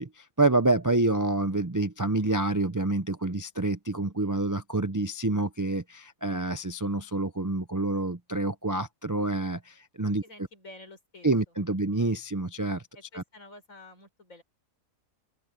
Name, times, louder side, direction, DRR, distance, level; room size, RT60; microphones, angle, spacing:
voice 1, 0.0-10.2 11.2-12.8 13.1-13.2, right 2 dB, 30° right, 0.3 m, -27 dB
voice 2, 10.2-11.3 12.9-14.4, left 2 dB, 70° left, 5.6 m, -49 dB
open air
omnidirectional pair, 1.4 m